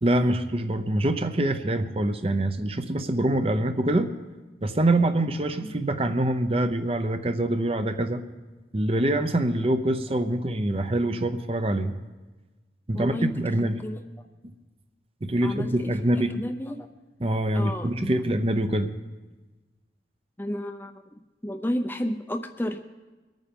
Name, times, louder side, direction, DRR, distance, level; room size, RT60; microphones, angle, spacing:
voice 1, 0.0-4.1 4.6-8.2 8.7-11.9 12.9-13.8 15.2-16.4 17.2-18.9, right 1 dB, 35° right, 9 dB, 0.7 m, -25 dB
voice 2, 12.9-14.0 15.4-16.9 17.5-18.1 20.4-21.0 21.4-22.8, equal, 10° left, 6 dB, 0.6 m, -32 dB
22.5 x 9.2 x 5.3 m, 1.2 s
head